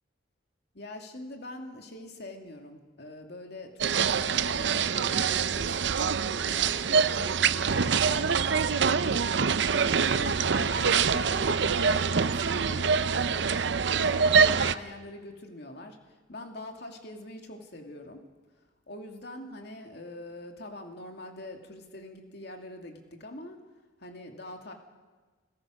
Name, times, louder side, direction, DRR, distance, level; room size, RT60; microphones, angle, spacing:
voice 1, 0.7-9.3 9.6-9.7 10.0-13.5 14.0-18.3 18.9-23.6 24.0-24.7, left 1 dB, 60° left, 3 dB, 2.7 m, -43 dB
sound 1, 3.8-14.7, right 6 dB, 65° right, 0.6 m, -25 dB
29.0 x 17.0 x 6.5 m, 1.3 s
head